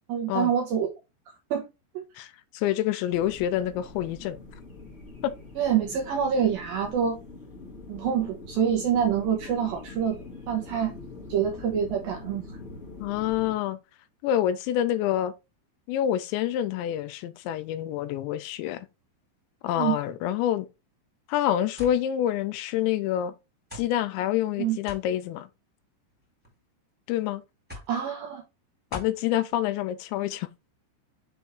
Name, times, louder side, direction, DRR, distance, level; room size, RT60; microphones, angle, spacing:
voice 1, 0.1-0.9 1.5-1.6 1.9-2.0 5.6-7.2 7.9-10.9 11.3-12.5 19.8-20.0 24.6-24.8 27.9-28.4, right 8 dB, 75° right, 2.2 m, -26 dB
voice 2, 2.2-4.4 5.2-5.3 13.0-13.8 14.2-15.3 15.9-18.9 19.6-20.7 21.3-23.3 23.7-25.5 27.1-27.4 28.9-30.5, left 11 dB, 85° left, 2.8 m, -27 dB
sound 1, 3.1-13.5, left 3 dB, 40° left, 0.8 m, -44 dB
sound 2, 21.8-22.0 22.9-23.0 23.7-23.9 24.9-25.1 26.1-26.5 27.7-28.0 28.9-29.2, left 2 dB, 5° right, 1.7 m, -41 dB
7.0 x 3.4 x 4.4 m
omnidirectional pair, 5.3 m